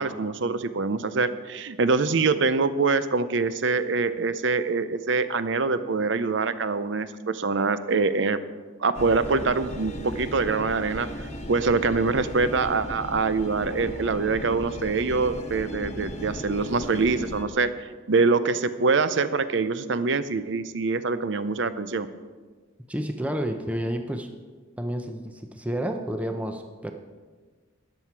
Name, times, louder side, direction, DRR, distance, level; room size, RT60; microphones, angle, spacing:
voice 1, 0.0-8.4 8.8-22.1, right 4 dB, 60° right, 13 dB, 0.6 m, -24 dB
sound 1, 8.9-17.4, equal, 30° left, 1.1 m, -36 dB
voice 2, 22.9-24.3 24.8-26.9, equal, 5° right, 5 dB, 0.6 m, -30 dB
13.0 x 10.0 x 4.6 m, 1.4 s
head